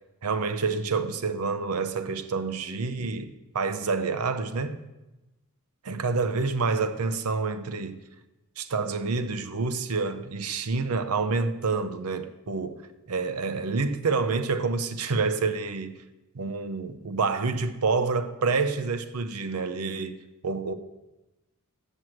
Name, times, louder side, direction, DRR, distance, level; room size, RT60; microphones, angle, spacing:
voice 1, 0.2-4.8 5.8-8.0 8.6-12.8 13.1-16.0 16.3-20.7, right 4 dB, 80° right, 0.7 m, -28 dB
7.7 x 6.3 x 7.4 m
head